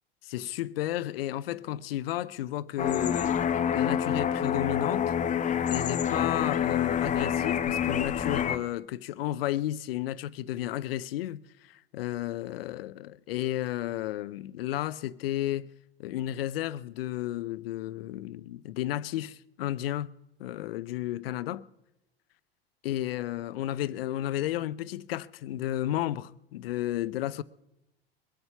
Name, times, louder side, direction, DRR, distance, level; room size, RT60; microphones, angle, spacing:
voice 1, 0.2-3.4 3.7-5.1 5.7-15.7 16.0-20.1 20.4-21.6 22.8-27.4, left 13 dB, 75° left, 0.6 m, -32 dB
sound 1, 2.8-8.6, left 8 dB, 25° left, 0.7 m, -27 dB
23.0 x 8.1 x 5.7 m
hypercardioid pair, 85°, 29 cm